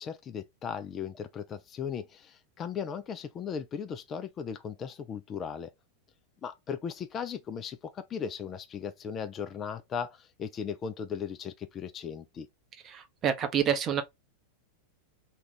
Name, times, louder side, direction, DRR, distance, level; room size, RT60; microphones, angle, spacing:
voice 1, 0.0-5.7 6.4-12.5, left 7 dB, 25° left, 0.3 m, -37 dB
voice 2, 12.8-14.0, right 8 dB, 30° right, 0.7 m, -28 dB
2.8 x 2.4 x 3.5 m
figure-of-eight pair, 90°, 0 cm